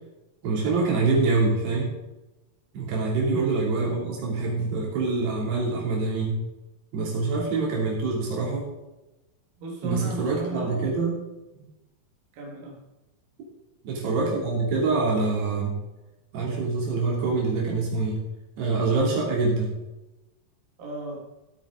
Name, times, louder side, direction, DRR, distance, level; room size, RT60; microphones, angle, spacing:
voice 1, 0.4-1.9 2.7-6.4 6.9-8.7 9.8-11.1 11.5-11.6 13.8-15.7 16.3-18.2 18.6-19.8, right 3 dB, 80° right, -3 dB, 5.2 m, -25 dB
voice 2, 9.6-10.9 12.3-12.8 20.8-21.2, right 2 dB, 60° right, -3 dB, 3.7 m, -35 dB
16.0 x 8.8 x 3.9 m, 1.0 s
omnidirectional pair, 4.6 m